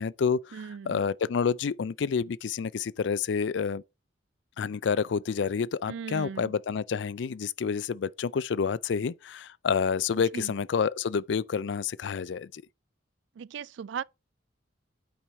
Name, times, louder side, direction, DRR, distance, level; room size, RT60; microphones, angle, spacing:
voice 1, 0.0-0.6 0.9-3.8 4.6-12.6, left 6 dB, 65° left, 0.4 m, -29 dB
voice 2, 0.5-1.0 5.9-6.5 10.3-10.5 13.4-14.0, right 7 dB, 70° right, 0.3 m, -38 dB
8.9 x 4.7 x 4.0 m
head